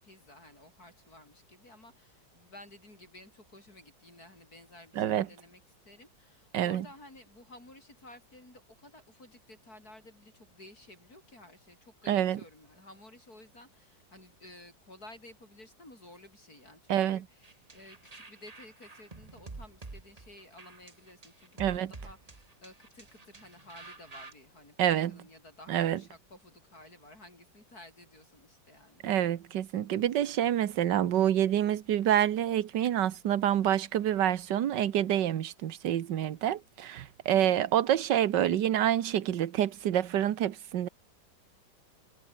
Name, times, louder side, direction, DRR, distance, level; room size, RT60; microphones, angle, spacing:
voice 1, 0.0-29.1 37.3-37.7, left 1 dB, 50° left, 7.9 m, -54 dB
voice 2, 5.0-5.3 6.5-6.9 12.1-12.4 16.9-17.2 21.6-21.9 24.8-25.2 25.7-26.0 29.0-40.9, right 11 dB, 70° right, 1.6 m, -27 dB
sound 1, 17.4-24.3, right 3 dB, 20° right, 1.6 m, -48 dB
omnidirectional pair, 2.0 m